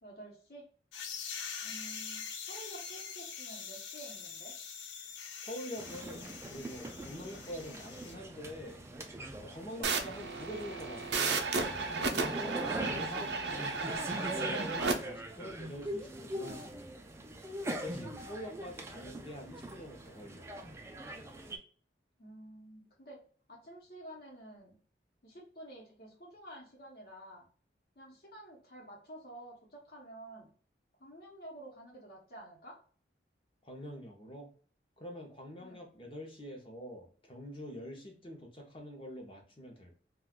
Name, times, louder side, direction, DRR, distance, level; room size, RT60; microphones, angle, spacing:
voice 1, 0.0-0.7 1.6-4.5 22.2-23.2 23.5-24.8 25.2-27.5 28.0-30.5 31.0-32.8 35.6-35.9, right 1 dB, 55° left, -3 dB, 0.9 m, -50 dB
sound 1, 0.9-8.1, left 6 dB, 85° left, 0.5 m, -44 dB
voice 2, 5.4-8.8 9.4-13.7 14.3-16.9 17.7-20.5 33.6-34.5 35.0-40.0, equal, 30° left, 1 dB, 0.7 m, -45 dB
sound 2, 5.8-21.6, right 1 dB, 15° right, 0.3 m, -42 dB
sound 3, 9.8-14.9, right 4 dB, 75° right, 0.5 m, -34 dB
2.4 x 2.3 x 3.5 m, 0.43 s
head